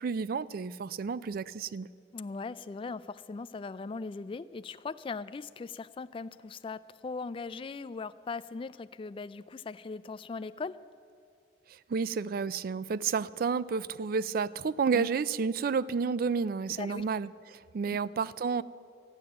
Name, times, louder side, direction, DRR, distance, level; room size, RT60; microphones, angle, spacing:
voice 1, 0.0-1.9 11.9-18.6, right 5 dB, 55° right, 18 dB, 0.3 m, -31 dB
voice 2, 2.1-10.8 14.9-15.1 16.8-17.0 17.9-18.0, left 4 dB, 30° left, 14 dB, 0.3 m, -39 dB
13.5 x 9.9 x 7.7 m, 2.4 s
head